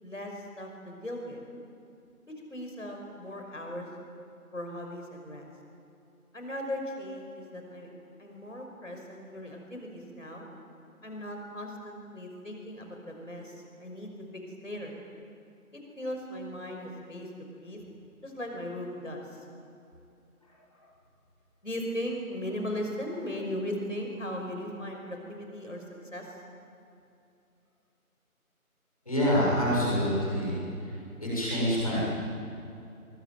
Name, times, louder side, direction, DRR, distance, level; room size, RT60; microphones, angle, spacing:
voice 1, 0.0-1.4 2.3-3.9 4.5-5.5 6.3-7.9 8.2-10.5 11.0-14.9 15.7-17.8 18.2-19.4 21.6-25.8 26.1-26.3, left 1 dB, 55° left, 2 dB, 5.8 m, -38 dB
voice 2, 29.1-30.6 31.2-32.0, equal, 25° left, -7 dB, 7.3 m, -26 dB
25.5 x 23.5 x 9.3 m, 2.6 s
figure-of-eight pair, 175°, 44 cm